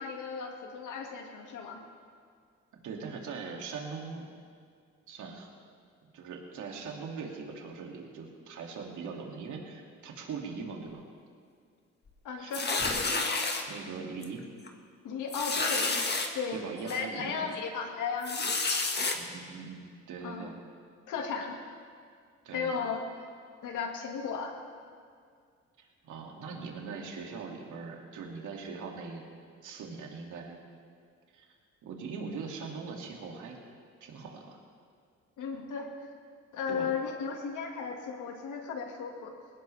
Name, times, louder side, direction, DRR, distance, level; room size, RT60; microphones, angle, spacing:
voice 1, 0.0-1.8 12.2-12.8 15.0-15.9 16.3-16.6 16.8-18.6 20.2-20.6 21.1-21.6 22.5-23.3 23.6-24.5 35.4-35.9 36.5-39.3, left 5 dB, 80° left, 2 dB, 2.2 m, -35 dB
voice 2, 2.8-4.3 5.1-5.5 6.0-11.0 12.4-12.6 13.7-14.4 16.5-17.5 19.1-20.6 22.4-22.7 25.8-29.2 29.6-30.6 31.3-31.5 31.8-33.6 34.0-34.6 36.7-36.9, right 5 dB, 75° right, 0 dB, 2.6 m, -41 dB
sound 1, 12.5-13.6 14.2-14.4 14.7-14.8 15.3-16.3 16.9-17.0 18.2-19.2, left 3 dB, 35° left, 1.8 m, -30 dB
20.5 x 17.5 x 3.5 m, 2.1 s
cardioid pair, 90°, 30 cm